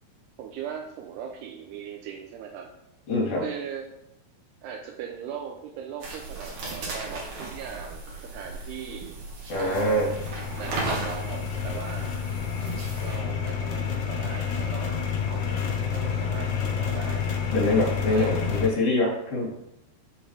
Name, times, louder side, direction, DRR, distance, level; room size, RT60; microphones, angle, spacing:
voice 1, 0.4-2.7 3.4-3.9 4.6-9.2 9.5-10.1 10.6-12.1 13.0-15.0 15.3-15.6 15.9-17.2 18.1-18.5, right 7 dB, 80° right, 2 dB, 2.6 m, -39 dB
voice 2, 3.1-3.4 9.5-10.1 17.5-19.5, left 1 dB, 40° left, -5 dB, 4.5 m, -24 dB
sound 1, 6.0-13.2, right 3 dB, 50° right, 2.6 m, -36 dB
sound 2, 9.7-18.7, left 7 dB, 70° left, 1.8 m, -29 dB
11.5 x 7.0 x 3.4 m, 0.83 s
omnidirectional pair, 5.2 m